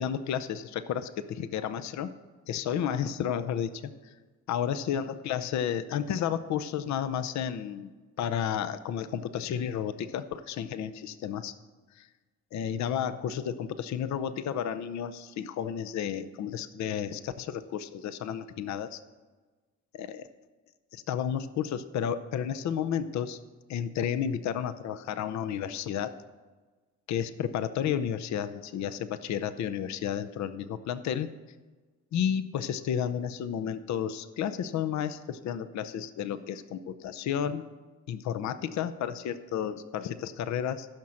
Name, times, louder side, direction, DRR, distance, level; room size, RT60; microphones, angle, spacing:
voice 1, 0.0-2.1 2.5-4.2 4.5-7.9 8.2-11.5 11.9-12.1 12.5-19.0 19.9-20.3 20.9-23.4 23.7-26.1 27.1-31.3 32.1-37.7 38.1-40.9, left 9 dB, 65° left, 12 dB, 0.6 m, -32 dB
15.0 x 5.9 x 6.3 m, 1.3 s
cardioid pair, 90°, 30 cm